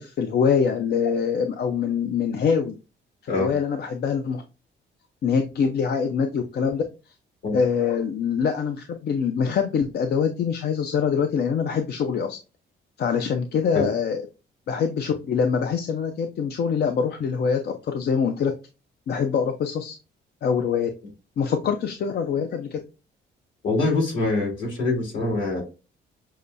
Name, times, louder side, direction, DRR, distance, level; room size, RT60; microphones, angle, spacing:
voice 1, 0.0-2.7 3.2-4.4 5.2-6.8 7.5-12.4 13.0-14.2 14.7-18.5 19.1-20.0 20.4-20.9 21.4-22.8, left 6 dB, 55° left, 5 dB, 0.5 m, -24 dB
voice 2, 23.6-25.6, left 3 dB, 70° left, -1 dB, 2.3 m, -24 dB
6.5 x 2.2 x 2.5 m, 0.30 s
cardioid pair, 90°, 20 cm